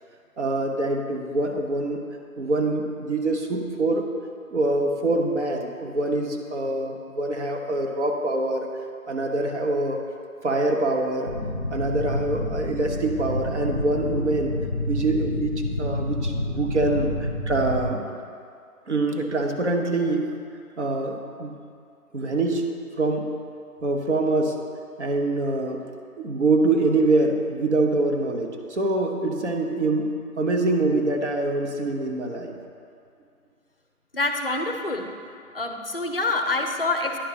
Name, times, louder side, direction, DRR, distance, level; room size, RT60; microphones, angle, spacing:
voice 1, 0.4-2.0 2.4-4.1 4.5-8.7 9.1-10.0 10.4-11.3 11.7-14.5 14.8-18.1 18.9-20.3 20.8-21.5 22.1-22.7 23.0-23.3 23.8-24.5 25.0-25.8 26.2-30.1 30.4-32.5, right 2 dB, 50° right, 3 dB, 1.0 m, -24 dB
sound 1, 11.3-17.9, left 1 dB, 15° right, 0.7 m, -29 dB
voice 2, 34.1-35.1 35.5-37.2, left 2 dB, 40° left, 5 dB, 0.5 m, -26 dB
10.0 x 4.5 x 5.7 m, 2.4 s
figure-of-eight pair, 160°, 45 cm